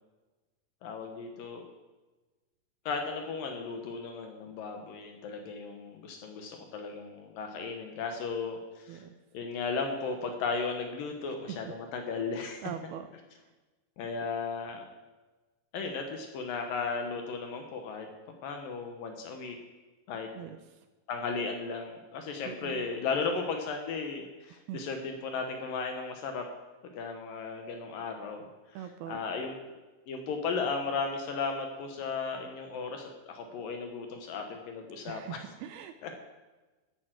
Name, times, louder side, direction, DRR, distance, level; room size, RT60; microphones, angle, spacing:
voice 1, 0.8-1.6 2.9-9.0 9.3-12.7 14.0-14.8 15.7-18.1 18.4-19.6 20.1-20.3 21.1-26.5 27.0-29.6 30.1-35.4 36.0-36.1, left 4 dB, 65° left, 4 dB, 2.4 m, -35 dB
voice 2, 12.6-13.1 20.3-20.6 22.5-22.9 24.7-24.8 28.8-29.2 35.1-36.1, right 10 dB, 80° right, 9 dB, 2.4 m, -41 dB
14.0 x 9.4 x 6.0 m, 1.2 s
omnidirectional pair, 4.9 m